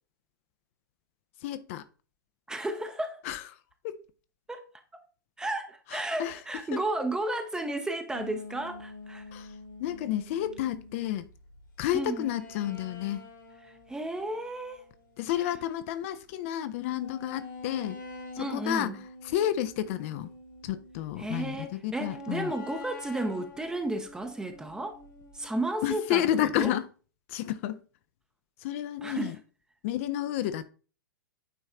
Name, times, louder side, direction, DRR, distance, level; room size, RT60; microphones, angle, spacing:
voice 1, 1.4-1.8 3.2-3.4 3.8-4.0 5.9-6.4 6.7-6.8 9.3-9.5 9.8-11.3 11.8-13.2 15.2-18.0 18.3-18.9 19.2-20.3 20.6-22.5 25.8-26.9 27.3-27.8 28.6-29.4 29.8-30.7, left 12 dB, 40° left, 0.4 m, -31 dB
voice 2, 2.5-3.2 4.5-4.7 5.4-9.3 11.9-12.3 13.6-14.9 15.4-15.5 18.4-19.0 21.2-25.0 25.3-26.3 26.6-26.7 29.0-29.3, right 1 dB, 5° right, 0.6 m, -33 dB
sound 1, 8.1-15.8 16.3-16.4 17.0-21.4 22.0-25.5, left 2 dB, 65° left, 1.7 m, -46 dB
9.0 x 3.1 x 3.7 m
figure-of-eight pair, 105°, 11 cm